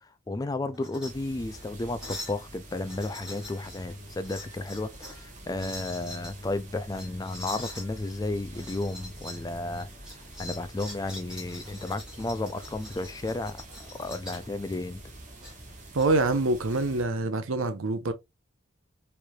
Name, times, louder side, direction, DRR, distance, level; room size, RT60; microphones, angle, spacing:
voice 1, 0.3-9.9 10.4-13.6 14.0-15.0, left 2 dB, 20° left, 0.3 m, -33 dB
sound 1, 0.7-1.1 1.5-1.6 2.0-2.4 2.8-3.8 4.2-5.2 5.5-6.3 6.9-7.9 8.5-9.4 9.7-14.5 15.4-16.1, left 1 dB, 5° right, 1.7 m, -43 dB
sound 2, 1.0-17.0, right 1 dB, 40° right, 1.2 m, -47 dB
voice 2, 15.9-18.1, right 2 dB, 80° right, 0.7 m, -25 dB
4.5 x 3.3 x 2.3 m
head